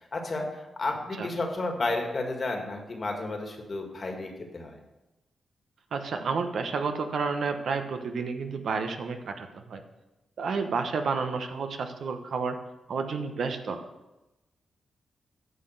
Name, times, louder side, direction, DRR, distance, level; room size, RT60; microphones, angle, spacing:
voice 1, 0.1-4.8, left 2 dB, 40° left, 2 dB, 1.8 m, -32 dB
voice 2, 5.9-9.8 10.4-12.6 12.9-13.8, right 5 dB, 75° right, 6 dB, 1.0 m, -30 dB
9.5 x 6.0 x 6.5 m, 1.0 s
wide cardioid pair, 105°, 0 cm